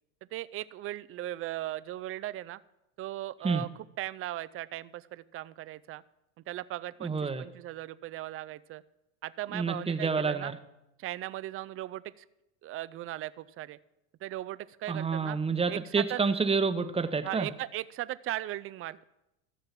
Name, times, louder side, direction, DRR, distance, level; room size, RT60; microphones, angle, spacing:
voice 1, 0.3-2.6 3.0-3.7 4.0-6.0 6.5-8.8 9.2-10.5 11.0-12.2 12.6-13.8 14.2-15.4 15.7-16.2 17.2-19.0, right 15 dB, 35° right, 16 dB, 0.5 m, -38 dB
voice 2, 7.0-7.4 9.5-10.6 14.9-17.5, right 4 dB, 15° right, 10 dB, 0.9 m, -28 dB
14.0 x 6.7 x 5.9 m, 0.91 s
hypercardioid pair, 90°, 41 cm